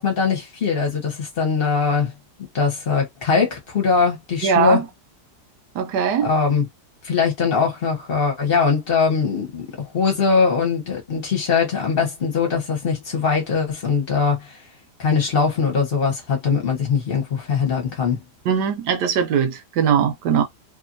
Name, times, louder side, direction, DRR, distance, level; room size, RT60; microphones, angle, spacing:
voice 1, 0.0-2.1 2.5-4.8 6.2-6.7 7.0-14.6 15.0-18.2, left 5 dB, 40° left, 1.1 m, -21 dB
voice 2, 4.4-4.9 5.8-6.3 18.5-20.4, right 7 dB, 75° right, 1.2 m, -20 dB
3.0 x 2.5 x 2.6 m
omnidirectional pair, 1.8 m